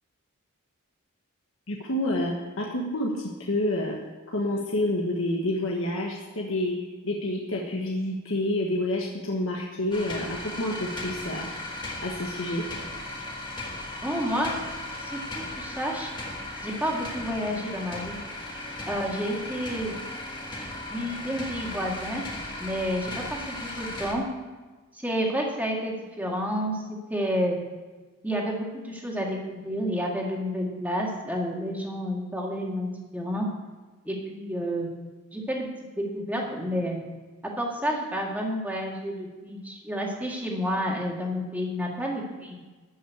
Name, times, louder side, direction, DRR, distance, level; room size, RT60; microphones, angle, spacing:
voice 1, 1.7-4.0 4.3-6.8 7.0-11.5 12.0-12.6, left 1 dB, 60° left, -1 dB, 1.3 m, -28 dB
sound 1, 9.9-24.1, left 1 dB, 20° left, 1.7 m, -36 dB
voice 2, 14.0-16.1 16.6-18.2 18.9-19.9 20.9-22.2 22.6-24.2 24.9-27.6 28.2-33.5 34.1-34.9 35.3-35.7 36.0-37.0 37.4-42.6, equal, 5° right, -1 dB, 1.9 m, -30 dB
13.0 x 5.6 x 8.1 m, 1.3 s
head